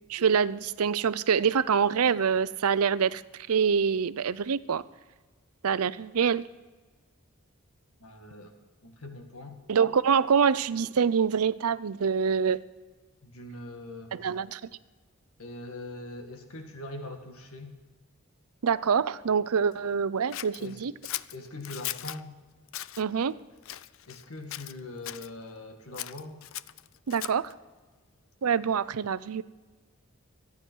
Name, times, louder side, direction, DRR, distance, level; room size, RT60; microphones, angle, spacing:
voice 1, 0.1-3.2 3.5-4.8 5.6-6.4 9.7-12.6 14.1-14.6 18.6-20.9 23.0-23.4 27.1-27.5 28.4-29.4, right 6 dB, 85° right, 17 dB, 0.5 m, -25 dB
voice 2, 8.0-8.5 8.8-9.6 13.2-14.3 15.4-17.7 20.6-20.8 21.3-22.4 24.1-26.4, left 2 dB, 80° left, 5 dB, 1.9 m, -42 dB
Scissors, 20.3-22.2 22.7-23.0 23.6-24.2 24.5-25.3 25.9-27.5, left 14 dB, 65° left, 0.4 m, -38 dB
26.0 x 9.6 x 4.5 m, 1.3 s
head